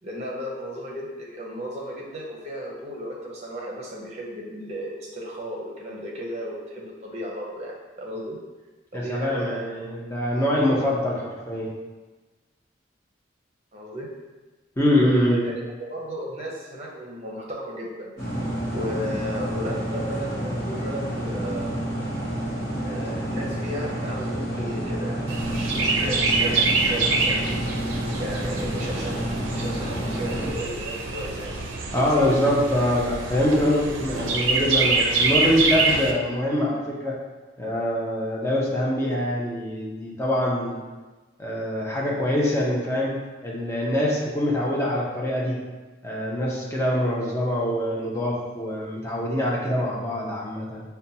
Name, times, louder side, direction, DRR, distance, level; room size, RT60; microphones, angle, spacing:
voice 1, 0.0-8.4 8.9-9.7 10.3-10.4 13.7-14.1 14.9-18.1 18.7-21.7 22.8-27.6 28.2-29.2 29.5-31.5 31.9-32.3, equal, 35° right, -3 dB, 0.7 m, -34 dB
voice 2, 8.9-11.7 14.8-15.4 31.9-37.2 37.6-40.8 41.4-43.1 43.4-45.6 46.0-50.8, left 1 dB, 15° left, -4 dB, 0.6 m, -24 dB
sound 1, 18.2-30.5, right 1 dB, 50° left, 1.1 m, -29 dB
Chirp tweet, 25.3-36.1, right 3 dB, 85° right, 0.5 m, -26 dB
5.4 x 2.2 x 2.7 m, 1.2 s
head